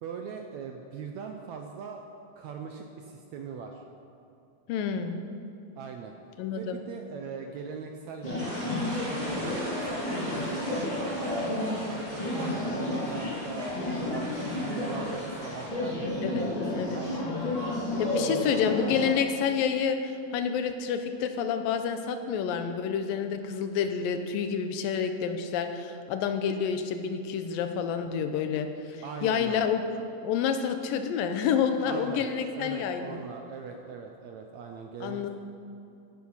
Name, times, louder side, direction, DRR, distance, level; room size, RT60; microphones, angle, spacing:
voice 1, 0.0-2.0 2.4-3.8 5.7-6.1 6.5-8.7 9.2-11.5 11.8-13.8 14.1-17.1 17.8-18.6 29.0-29.6 31.8-32.3 32.6-35.3, right 6 dB, 75° right, 3 dB, 1.7 m, -40 dB
voice 2, 4.7-5.2 6.4-6.8 16.2-16.5 16.7-17.0 18.0-29.8 30.2-33.2 35.0-35.3, left 7 dB, 80° left, 7 dB, 2.6 m, -29 dB
sound 1, 8.2-19.1, left 1 dB, 10° left, 2.3 m, -31 dB
sound 2, 8.4-15.7, right 1 dB, 45° right, 4.4 m, -40 dB
15.0 x 10.5 x 5.7 m, 2.6 s
omnidirectional pair, 4.0 m